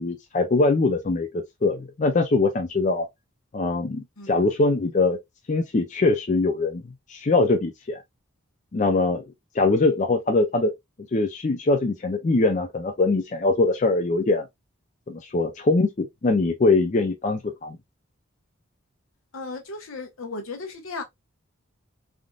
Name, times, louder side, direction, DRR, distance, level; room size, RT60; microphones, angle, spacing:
voice 1, 0.0-3.1 3.5-5.2 5.5-6.8 7.1-8.0 8.7-9.3 9.5-10.7 11.1-14.5 15.1-17.8, left 3 dB, 35° left, 0.4 m, -22 dB
voice 2, 19.3-21.0, left 3 dB, 75° left, 0.9 m, -35 dB
3.5 x 2.5 x 2.3 m
head